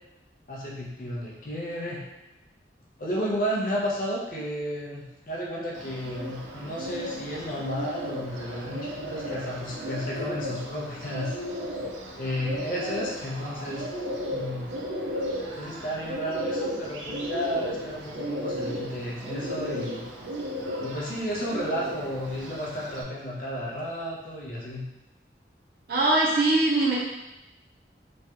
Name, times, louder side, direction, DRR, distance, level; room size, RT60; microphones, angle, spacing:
voice 1, 0.5-2.0 3.0-11.4 12.2-13.9 14.3-14.7 15.5-20.0 20.8-24.9, equal, 50° left, -3 dB, 0.6 m, -32 dB
Bird, 5.7-23.0, equal, 85° right, 0.4 m, -35 dB
voice 2, 25.9-26.9, right 2 dB, 55° right, -5 dB, 0.7 m, -21 dB
3.1 x 2.3 x 2.8 m, 0.95 s
head